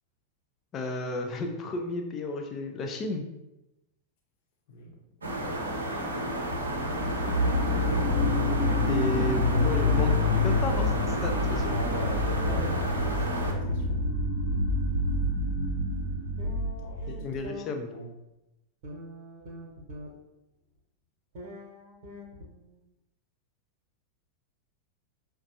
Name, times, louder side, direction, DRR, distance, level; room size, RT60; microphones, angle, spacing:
voice 1, 0.7-3.2 8.9-11.8 17.1-17.9, left 2 dB, 30° left, 4 dB, 0.6 m, -33 dB
voice 2, 4.7-5.0 5.2-5.8 11.7-14.0 16.8-17.1 17.9-18.1, left 2 dB, 50° left, 0 dB, 0.9 m, -42 dB
sound 1, 5.2-13.5, right 1 dB, 75° right, 0.6 m, -31 dB
sound 2, 6.6-8.2 8.5-14.3 16.4-17.6 18.8-20.1 21.3-22.8, left 1 dB, 50° right, 1.0 m, -41 dB
sound 3, 6.7-17.3, left 2 dB, 75° left, 0.9 m, -27 dB
5.8 x 2.2 x 2.8 m, 0.94 s
figure-of-eight pair, 90°, 0 cm